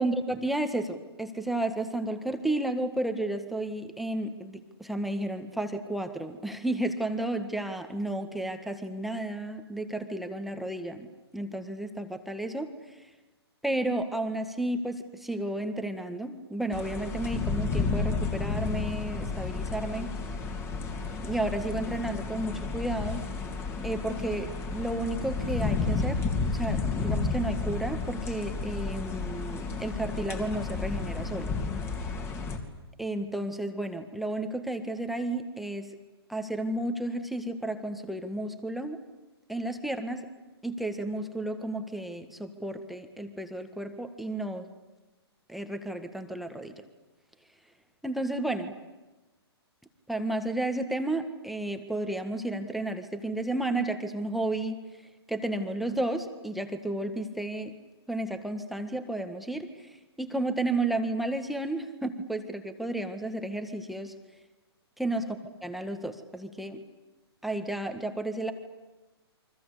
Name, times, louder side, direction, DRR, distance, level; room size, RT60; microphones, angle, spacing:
voice 1, 0.0-11.1 11.3-12.7 13.6-20.1 21.2-23.2 23.8-26.2 26.5-31.6 33.0-35.9 36.3-39.0 39.5-40.3 40.6-44.7 45.5-46.7 48.0-48.7 50.1-54.8 55.3-57.7 58.1-64.1 65.0-65.4 65.6-66.8 67.4-68.5, right 1 dB, ahead, 6 dB, 1.7 m, -32 dB
sound 1, 16.7-32.6, left 4 dB, 20° left, 3.1 m, -32 dB
29.0 x 24.5 x 8.4 m, 1.1 s
hypercardioid pair, 145°, 14 cm